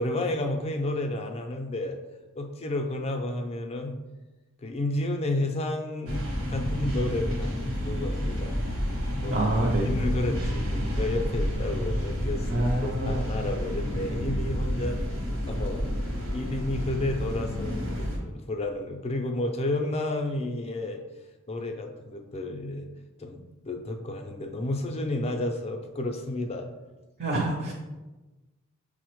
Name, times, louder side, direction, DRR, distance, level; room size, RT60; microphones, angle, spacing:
voice 1, 0.0-2.0 2.3-4.0 4.6-8.6 9.2-9.4 9.7-15.0 15.5-21.0 21.5-22.9 23.2-26.7, left 2 dB, 30° left, 4 dB, 0.4 m, -31 dB
sound 1, 6.1-18.2, equal, 75° right, 0.9 m, -29 dB
voice 2, 9.3-10.0 12.5-13.3 27.2-27.7, right 1 dB, 50° right, 0 dB, 0.5 m, -27 dB
5.5 x 2.1 x 3.0 m, 1.1 s
head